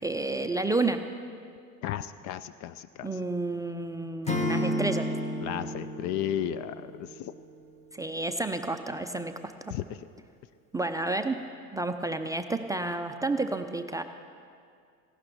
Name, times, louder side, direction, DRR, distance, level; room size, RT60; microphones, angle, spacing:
voice 1, 0.0-1.1 3.0-5.1 7.9-9.5 10.7-11.4 11.7-14.0, right 2 dB, 5° right, 7 dB, 0.5 m, -30 dB
voice 2, 1.8-3.2 5.4-7.3 9.7-10.0, left 11 dB, 40° left, 14 dB, 0.5 m, -34 dB
Acoustic guitar / Strum, 4.2-7.3, left 1 dB, 15° left, 1.7 m, -31 dB
17.5 x 15.5 x 4.6 m, 2.3 s
hypercardioid pair, 75°, 48 cm